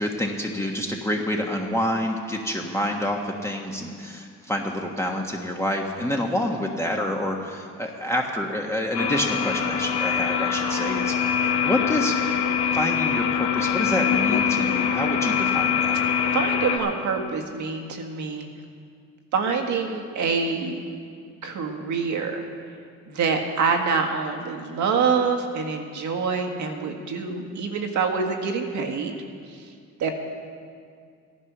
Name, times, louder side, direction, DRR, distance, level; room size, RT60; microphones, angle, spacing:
voice 1, 0.0-12.2 12.7-16.0, left 1 dB, 10° left, 0 dB, 1.5 m, -28 dB
sound 1, 8.9-16.8, left 7 dB, 70° left, 1.7 m, -23 dB
voice 2, 16.3-18.5 19.3-20.8 21.4-22.4 23.1-29.1 29.5-29.6 30.0-30.1, right 5 dB, 75° right, 4 dB, 1.9 m, -26 dB
14.5 x 11.0 x 6.1 m, 2.2 s
cardioid pair, 90°, 30 cm